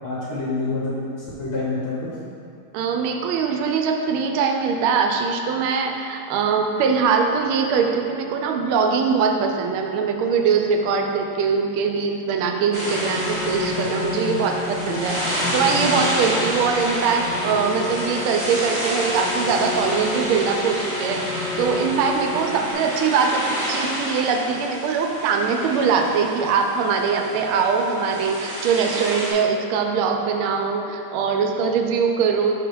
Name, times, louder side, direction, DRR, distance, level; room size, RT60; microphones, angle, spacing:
voice 1, 0.0-2.1, left 2 dB, 50° left, -7 dB, 0.7 m, -27 dB
voice 2, 2.7-32.6, right 5 dB, 80° right, 3 dB, 1.4 m, -22 dB
sound 1, 12.7-29.3, equal, 20° right, 0.9 m, -29 dB
sound 2, 12.8-22.7, left 3 dB, 70° left, 1.2 m, -31 dB
5.3 x 3.9 x 4.6 m, 2.4 s
omnidirectional pair, 2.4 m